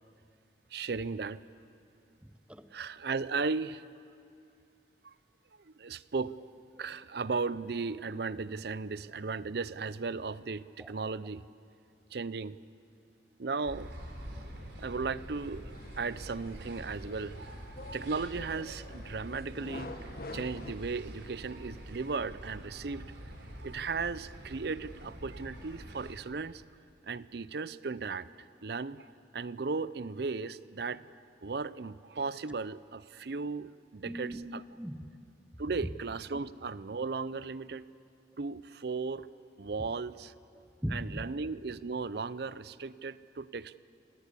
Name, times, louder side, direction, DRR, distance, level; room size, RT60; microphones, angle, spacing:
voice 1, 0.7-1.4 2.7-3.8 5.0-5.1 5.6-6.4 6.8-11.4 12.1-12.6 13.4-13.9 14.8-17.4 17.9-19.9 20.3-23.1 23.6-26.6 27.1-31.1 31.4-34.6 35.6-37.9 38.4-39.3 39.6-40.3 40.9-43.8, right 4 dB, 60° right, 17 dB, 0.5 m, -36 dB
voice 2, 2.2-2.7 6.8-6.9 10.8-10.9 14.3-14.5 34.0-35.2 40.6-41.3, equal, 5° right, 11 dB, 0.7 m, -40 dB
sound 1, 13.6-26.1, equal, 80° right, 3.9 m, -46 dB
sound 2, 15.7-20.7, left 2 dB, 50° left, 1.2 m, -47 dB
26.5 x 18.5 x 8.4 m, 2.5 s
head